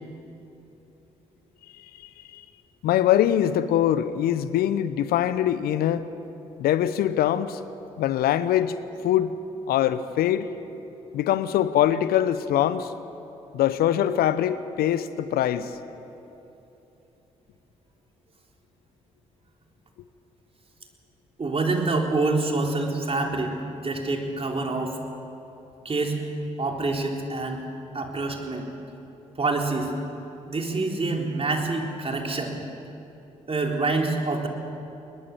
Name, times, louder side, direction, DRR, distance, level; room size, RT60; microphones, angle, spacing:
voice 1, 2.0-2.4 2.8-6.1 6.6-7.6 8.0-8.7 9.0-9.3 9.7-10.5 11.1-12.9 13.5-15.8, left 11 dB, 65° left, 14 dB, 0.8 m, -23 dB
voice 2, 21.4-25.0 25.9-26.2 26.6-27.6 27.9-28.7 29.4-29.9 30.4-32.6 33.5-34.5, right 3 dB, 35° right, 1 dB, 3.7 m, -26 dB
21.5 x 21.0 x 7.2 m, 2.9 s
hypercardioid pair, 40°, 17 cm